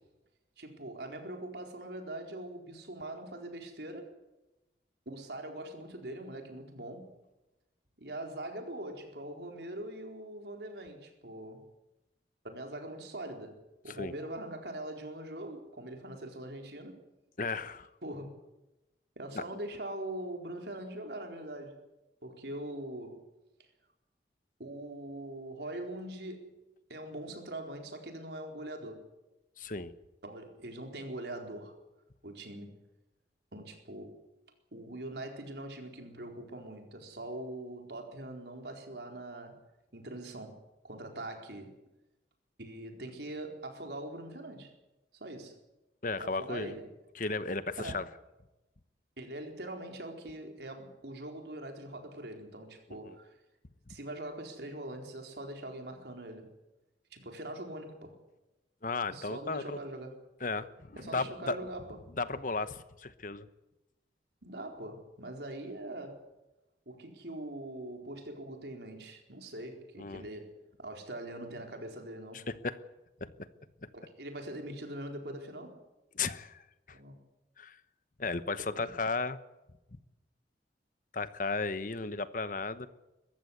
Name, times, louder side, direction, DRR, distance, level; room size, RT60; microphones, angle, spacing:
voice 1, 0.6-4.1 5.1-7.1 8.0-11.6 12.4-13.6 13.8-17.0 18.0-18.3 19.2-21.8 22.2-23.2 24.6-26.6 26.9-29.0 30.2-31.7 32.2-32.8 33.5-34.2 34.7-39.6 39.9-41.8 42.6-44.7 45.1-45.5 46.2-46.9 47.8-48.1 49.2-53.3 53.9-56.5 57.1-58.2 59.1-60.2 61.0-62.0 64.4-66.2 66.9-72.5 73.9-75.8 76.9-77.2 78.6-78.9, right 1 dB, 70° right, 4.2 m, -42 dB
voice 2, 17.4-17.9 19.3-19.4 29.6-30.0 46.0-46.7 47.2-48.0 53.0-53.2 58.8-59.8 60.4-61.6 62.2-63.5 70.0-70.2 72.3-72.8 73.2-73.3 76.1-76.6 76.9-77.0 77.6-77.8 78.2-79.4 79.9-80.0 81.1-82.9, left 3 dB, 50° left, 1.1 m, -35 dB
22.0 x 15.0 x 9.7 m
head